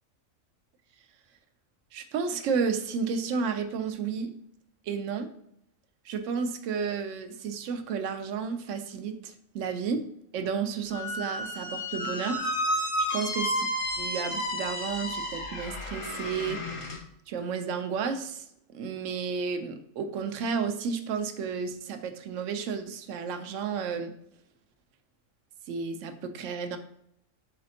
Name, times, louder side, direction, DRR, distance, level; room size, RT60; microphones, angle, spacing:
voice 1, 1.9-4.3 4.8-5.3 6.0-10.0 10.3-13.7 14.0-16.8 17.3-24.1 25.7-26.8, right 6 dB, 75° right, 8 dB, 0.9 m, -32 dB
Squeak, 10.9-17.0, equal, 40° left, 0.4 m, -32 dB
4.1 x 4.0 x 2.7 m, 0.74 s
omnidirectional pair, 1.4 m